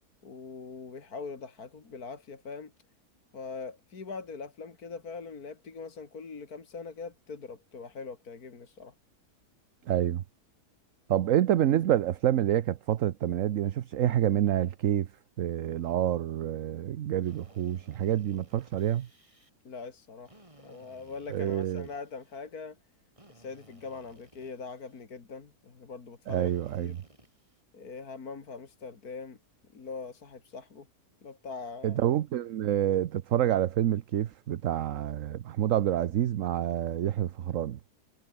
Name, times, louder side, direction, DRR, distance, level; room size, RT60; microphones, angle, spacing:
voice 1, 0.2-2.7 3.3-8.9 19.6-20.3 20.6-22.8 23.3-26.5 26.8-26.9 27.7-29.4 29.7-30.9 31.2-32.0, left 4 dB, 70° left, 2.9 m, -42 dB
voice 2, 9.9-10.2 11.1-15.1 15.4-19.1 21.3-21.9 26.3-27.0 31.8-37.8, right 11 dB, 60° right, 1.1 m, -27 dB
Drill, 17.2-19.5 20.2-22.5 23.2-25.1 26.3-27.6, right 1 dB, 20° right, 3.9 m, -59 dB
omnidirectional pair, 1.7 m